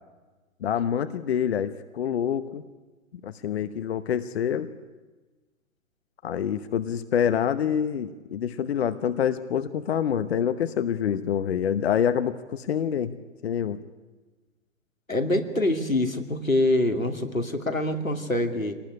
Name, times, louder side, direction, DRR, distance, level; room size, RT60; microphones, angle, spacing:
voice 1, 0.6-2.6 3.2-4.7 6.2-13.1 13.4-13.8, left 8 dB, 50° left, 11 dB, 1.0 m, -26 dB
voice 2, 15.1-18.7, left 1 dB, 90° left, 4 dB, 2.6 m, -25 dB
25.5 x 19.0 x 9.8 m, 1.3 s
figure-of-eight pair, 115°, 40 cm